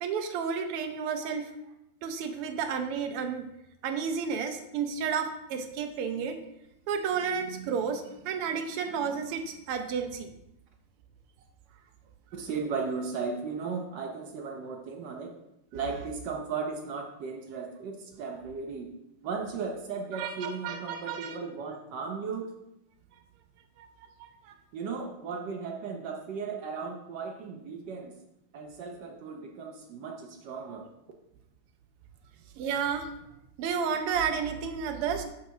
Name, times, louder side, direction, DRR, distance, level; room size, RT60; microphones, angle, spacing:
voice 1, 0.0-1.5 2.0-3.5 3.8-6.4 6.9-10.3 20.1-21.4 23.8-23.9 24.4-24.5 32.6-33.1 33.6-35.2, right 6 dB, 90° right, 6 dB, 1.6 m, -31 dB
voice 2, 12.3-15.3 15.7-18.9 19.2-22.5 24.7-28.2 28.5-30.9, right 5 dB, 70° right, 3 dB, 1.1 m, -36 dB
6.8 x 6.5 x 2.7 m, 0.84 s
omnidirectional pair, 2.4 m